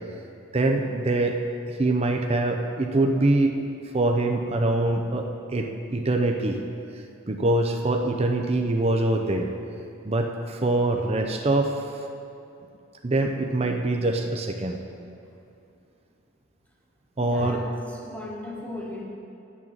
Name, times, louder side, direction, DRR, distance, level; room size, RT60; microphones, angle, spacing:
voice 1, 0.5-1.4 1.7-3.6 3.9-6.6 7.3-9.5 10.0-11.8 13.0-14.8 17.2-17.6, right 2 dB, 30° right, 3 dB, 0.5 m, -24 dB
voice 2, 17.2-19.0, left 1 dB, 5° left, -2 dB, 1.3 m, -36 dB
10.5 x 6.2 x 7.2 m, 2.7 s
head